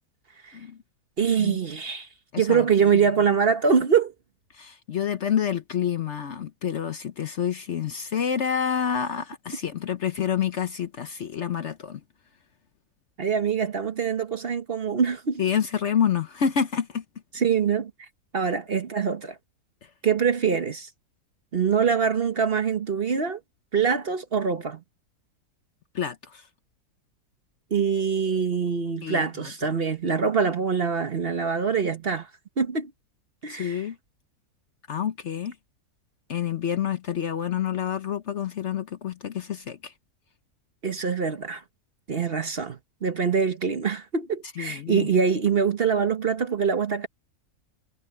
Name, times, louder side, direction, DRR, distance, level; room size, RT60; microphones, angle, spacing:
voice 1, 1.2-2.1 2.4-4.1 13.2-15.4 17.3-17.9 18.3-19.4 20.0-20.9 21.5-23.4 23.7-24.8 27.7-32.3 32.6-32.9 33.4-33.8 40.8-41.6 42.1-47.1, right 6 dB, 40° right, 1.2 m, -24 dB
voice 2, 2.3-2.7 4.5-12.0 15.4-17.0 25.9-26.4 29.0-29.2 33.5-34.0 34.9-35.5 36.3-39.9 44.6-45.1, left 8 dB, 55° left, 1.0 m, -28 dB
omnidirectional pair, 1.7 m